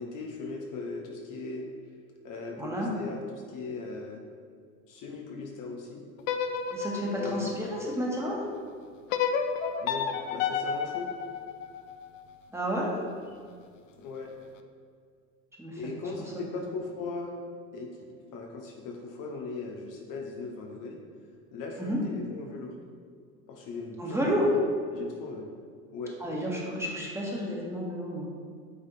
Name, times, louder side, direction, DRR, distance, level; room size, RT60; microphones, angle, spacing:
voice 1, 0.0-1.7 2.2-4.2 4.9-6.0 7.1-7.5 9.8-11.1 14.0-14.3 15.8-17.3 17.7-17.9 18.3-21.0 21.5-22.8 23.5-24.5 24.9-25.5 25.9-26.2, left 3 dB, 50° left, 1 dB, 1.0 m, -38 dB
voice 2, 2.6-2.9 6.7-8.4 12.5-12.9 15.6-15.8 21.8-22.0 24.0-24.5 26.2-28.3, equal, 5° right, -4 dB, 1.7 m, -31 dB
tremolo guitar delay, 6.2-8.4 9.1-12.2, left 6 dB, 65° left, 0.7 m, -31 dB
8.7 x 3.4 x 4.2 m, 2.1 s
hypercardioid pair, 75°, 43 cm